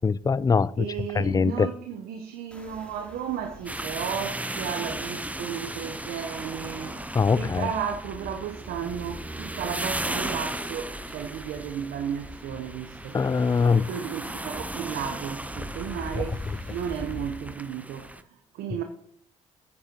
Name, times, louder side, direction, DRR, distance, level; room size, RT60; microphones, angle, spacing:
voice 1, 0.0-0.7 1.2-1.7 7.2-7.6 13.1-13.8, left 5 dB, 20° left, 0.4 m, -22 dB
voice 2, 0.8-13.2 13.7-16.4 16.7-18.8, right 8 dB, 70° right, 0.9 m, -34 dB
sound 1, 2.5-17.5, left 2 dB, 5° left, 3.1 m, -44 dB
sound 2, 3.7-18.2, right 1 dB, 10° right, 0.8 m, -36 dB
14.0 x 9.4 x 2.9 m
hypercardioid pair, 50°, 16 cm